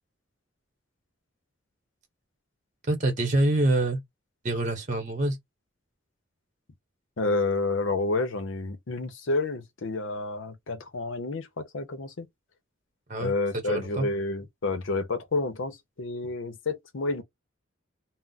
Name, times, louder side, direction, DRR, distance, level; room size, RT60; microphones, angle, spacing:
voice 1, 2.9-4.0 4.4-5.4 13.1-13.3 13.7-14.1, right 2 dB, 40° right, 0.9 m, -25 dB
voice 2, 7.2-12.3 13.2-17.2, left 3 dB, 80° left, 0.7 m, -29 dB
2.4 x 2.0 x 3.8 m
head